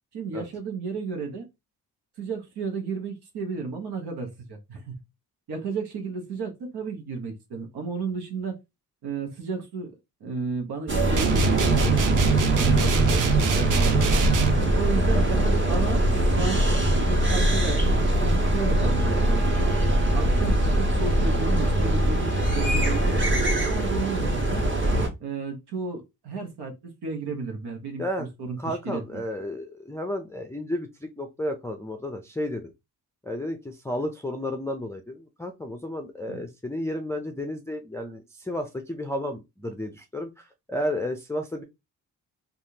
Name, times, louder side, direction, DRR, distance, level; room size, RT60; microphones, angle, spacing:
voice 1, 0.1-1.5 2.2-5.0 5.5-8.5 9.0-9.9 10.2-13.2 13.5-14.3 14.7-15.4 15.7-16.6 17.1-19.7 20.1-23.4 23.7-24.6 25.2-26.7 27.0-29.0 36.3-36.5, right 4 dB, 75° right, 1.0 m, -33 dB
sound 1, 10.9-25.1, right 1 dB, 30° right, 1.5 m, -22 dB
sound 2, 11.2-14.7, right 8 dB, 50° right, 0.6 m, -24 dB
voice 2, 15.1-15.5 28.0-28.3 28.6-32.7 33.2-41.6, left 1 dB, 5° left, 0.5 m, -32 dB
3.4 x 2.5 x 2.8 m
cardioid pair, 70°, 40 cm